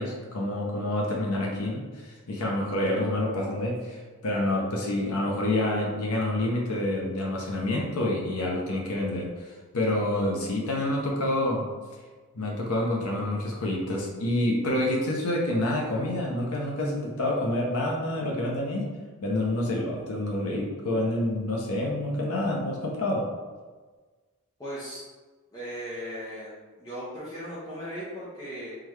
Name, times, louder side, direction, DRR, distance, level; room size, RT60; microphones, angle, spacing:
voice 1, 0.0-11.6 12.3-18.9 19.2-23.3, left 1 dB, 80° left, -1 dB, 0.7 m, -28 dB
voice 2, 24.6-25.0 25.5-26.5 26.8-28.8, equal, 15° left, -11 dB, 0.9 m, -37 dB
3.7 x 3.3 x 3.1 m, 1.4 s
head